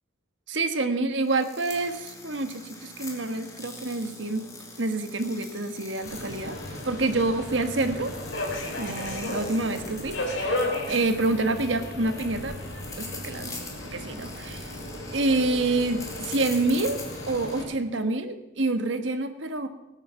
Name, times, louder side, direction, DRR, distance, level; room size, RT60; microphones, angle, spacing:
voice 1, 0.5-4.5 4.8-6.6 6.8-8.1 8.8-10.6 10.9-12.6 13.0-13.6 13.9-14.7 15.1-17.0 17.3-19.7, right 2 dB, 75° right, 8 dB, 1.4 m, -27 dB
sound 1, 1.2-17.6, left 2 dB, 15° left, 2.3 m, -43 dB
Subway metro underground, 6.0-17.7, left 1 dB, 75° left, 4.3 m, -35 dB
18.5 x 9.9 x 6.9 m, 0.94 s
head